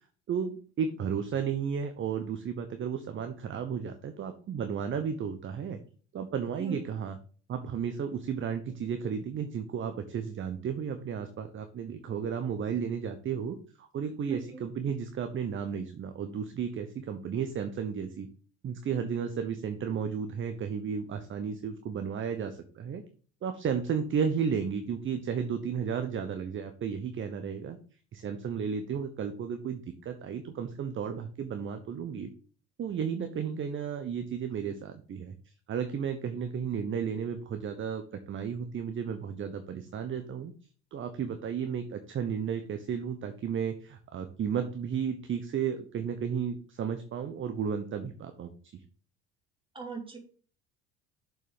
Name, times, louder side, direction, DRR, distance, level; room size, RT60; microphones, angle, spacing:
voice 1, 0.3-5.8 6.1-7.2 7.5-18.3 18.6-23.0 23.4-27.8 28.1-32.3 32.8-35.3 35.7-40.5 40.9-48.8, right 7 dB, 35° right, 8 dB, 1.0 m, -33 dB
voice 2, 14.2-14.6 49.7-50.2, right 4 dB, 15° right, 2 dB, 3.0 m, -38 dB
6.8 x 6.2 x 5.1 m, 0.42 s
figure-of-eight pair, 60°, 35 cm